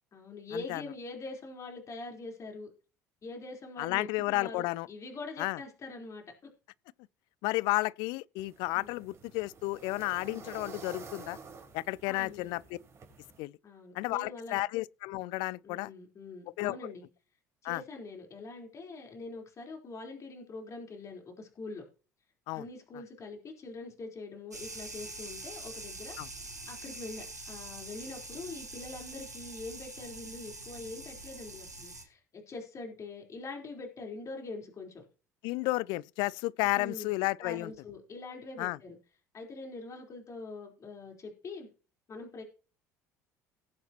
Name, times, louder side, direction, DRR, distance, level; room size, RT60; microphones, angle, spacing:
voice 1, 0.1-2.7 3.2-6.2 8.7-9.0 10.3-10.5 12.1-12.6 13.6-14.7 15.6-17.0 17.6-21.8 22.5-26.2 26.7-35.0 36.6-37.1 37.4-39.0 39.3-41.7 42.1-42.4, left 3 dB, 35° left, 4.0 m, -44 dB
voice 2, 3.8-4.9 5.4-5.6 7.4-11.4 11.7-12.6 13.4-13.5 14.0-15.9 16.6-16.8 17.6-17.8 22.5-22.6 26.2-26.3 35.4-37.7 38.6-38.8, left 20 dB, 60° left, 0.4 m, -32 dB
sound 1, 8.4-13.4, right 5 dB, 35° right, 3.9 m, -50 dB
sound 2, 24.5-32.0, right 2 dB, 90° right, 1.5 m, -44 dB
18.5 x 8.1 x 2.9 m
figure-of-eight pair, 60°, 9 cm